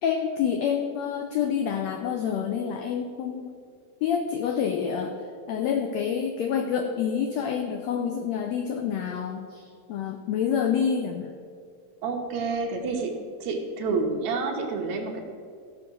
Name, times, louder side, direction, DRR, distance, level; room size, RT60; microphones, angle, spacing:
voice 1, 0.0-3.6 4.0-5.1 5.5-11.3, left 7 dB, 85° left, 5 dB, 1.5 m, -27 dB
voice 2, 12.0-15.2, right 4 dB, 65° right, 2 dB, 2.2 m, -29 dB
15.0 x 5.4 x 6.1 m, 2.2 s
omnidirectional pair, 3.8 m